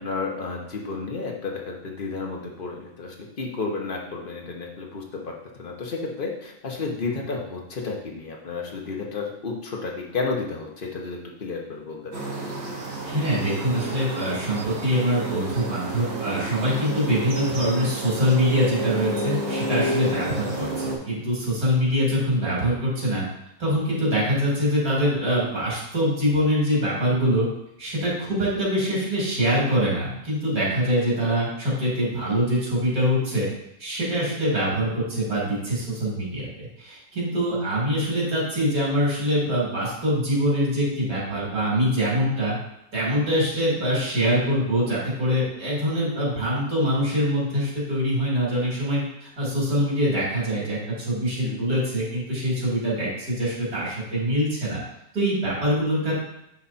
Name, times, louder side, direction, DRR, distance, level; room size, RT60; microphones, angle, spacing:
voice 1, 0.0-12.3 20.1-20.4 51.4-51.6, left 4 dB, 40° left, 0 dB, 1.2 m, -32 dB
sound 1, 12.1-21.0, right 2 dB, 50° right, 1.3 m, -30 dB
voice 2, 13.0-23.2 23.6-27.5 27.8-33.5 33.8-42.6 42.9-54.8 55.1-56.1, equal, 85° right, -6 dB, 3.2 m, -24 dB
9.4 x 3.4 x 4.2 m, 0.83 s
omnidirectional pair, 1.5 m